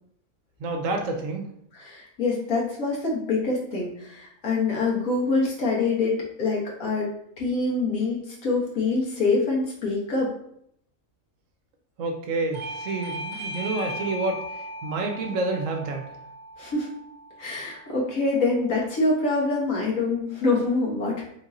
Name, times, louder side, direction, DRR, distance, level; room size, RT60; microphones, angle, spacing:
voice 1, 0.6-1.4 12.0-16.1, right 3 dB, 70° right, 3 dB, 1.0 m, -29 dB
voice 2, 1.7-7.1 7.4-10.3 16.6-16.9 17.4-21.2, left 3 dB, 85° left, -4 dB, 1.6 m, -25 dB
Bell / Doorbell, 12.5-17.7, equal, 30° right, 0.6 m, -37 dB
3.7 x 2.5 x 4.1 m, 0.71 s
omnidirectional pair, 1.4 m